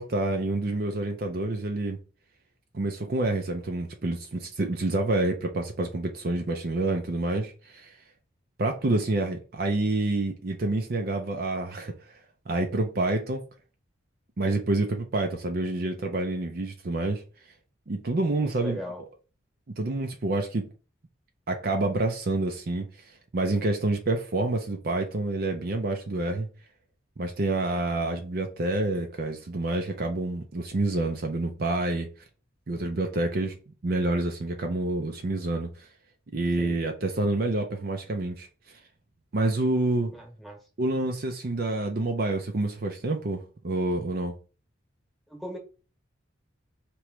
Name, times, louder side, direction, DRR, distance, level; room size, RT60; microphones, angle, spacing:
voice 1, 0.0-2.0 2.7-8.0 8.6-11.9 12.5-13.4 14.4-17.2 17.9-18.8 19.7-20.7 21.5-22.9 23.3-26.5 27.2-32.1 32.7-33.5 33.8-35.9 36.3-38.5 39.3-40.1 40.8-44.3, right 2 dB, 50° right, 0.5 m, -28 dB
voice 2, 18.4-19.0 36.6-36.8 40.1-40.6 45.3-45.6, equal, ahead, 1.2 m, -38 dB
3.1 x 3.0 x 4.6 m
head